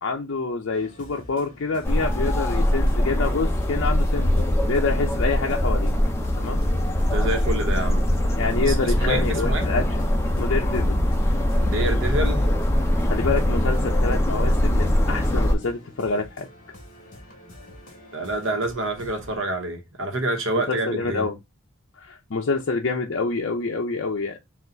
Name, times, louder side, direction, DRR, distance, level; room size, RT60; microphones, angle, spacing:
voice 1, 0.0-5.9 6.4-6.7 8.4-9.8 10.4-11.0 13.1-16.5 20.7-21.4 22.0-24.4, left 4 dB, 60° left, 0.5 m, -27 dB
sound 1, 0.7-19.4, left 1 dB, 40° left, 1.4 m, -45 dB
sound 2, 1.8-15.5, left 1 dB, 10° left, 0.5 m, -22 dB
voice 2, 7.1-8.1 8.6-8.7 9.0-9.6 11.6-12.4 18.1-21.2, right 2 dB, 65° right, 1.1 m, -27 dB
4.2 x 2.4 x 3.8 m
head